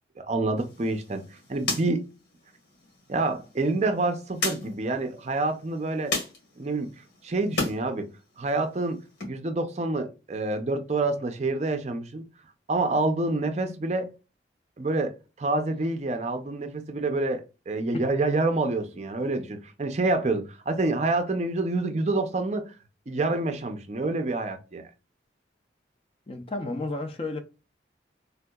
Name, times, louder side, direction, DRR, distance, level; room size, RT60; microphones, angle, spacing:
voice 1, 0.2-1.2 1.5-2.0 3.1-6.1 6.6-6.9 7.2-8.1 8.4-9.0 9.2-12.3 12.7-14.1 14.8-22.7 23.1-24.8, right 2 dB, 35° right, 0.4 m, -27 dB
sound 1, 0.6-7.8 8.1-9.3, left 2 dB, 75° left, 1.6 m, -36 dB
voice 2, 26.3-27.4, left 2 dB, 30° left, 0.5 m, -32 dB
3.4 x 2.7 x 2.2 m
head